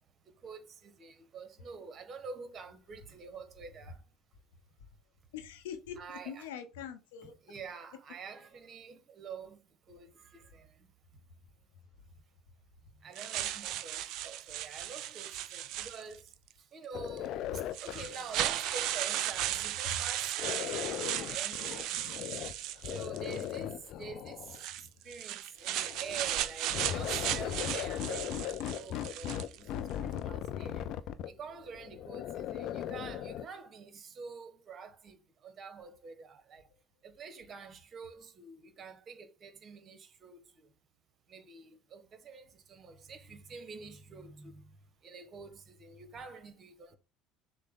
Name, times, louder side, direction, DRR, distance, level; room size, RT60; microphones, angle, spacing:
voice 1, 0.4-4.0 6.0-6.5 7.2-9.6 9.9-10.7 13.0-16.2 16.7-22.1 22.9-24.5 25.0-30.8 31.3-36.6 37.0-40.4 41.3-44.7 45.0-47.0, right 5 dB, 45° right, 1.1 m, -47 dB
voice 2, 5.3-7.4 24.8-24.9, left 8 dB, 85° left, 0.8 m, -43 dB
sound 1, 13.2-16.3 17.2-17.3 17.7-23.5 24.4-29.6, right 12 dB, 65° right, 0.4 m, -36 dB
sound 2, 16.9-19.7 20.4-22.6 22.8-24.6 25.7-33.5, left 10 dB, 60° left, 0.4 m, -38 dB
6.4 x 2.2 x 3.8 m
hypercardioid pair, 70°, 0 cm